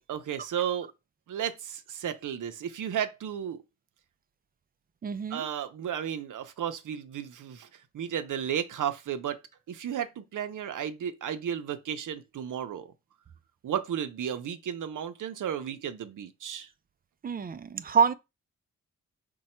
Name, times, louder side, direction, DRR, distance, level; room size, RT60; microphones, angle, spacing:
voice 1, 0.1-0.9 1.3-3.6 5.3-7.7 7.9-9.4 9.7-12.9 13.6-16.7, right 9 dB, 75° right, 0.7 m, -33 dB
voice 2, 5.0-5.5 17.2-18.1, right 6 dB, 30° right, 0.3 m, -26 dB
5.4 x 2.3 x 4.3 m
wide cardioid pair, 110°, 31 cm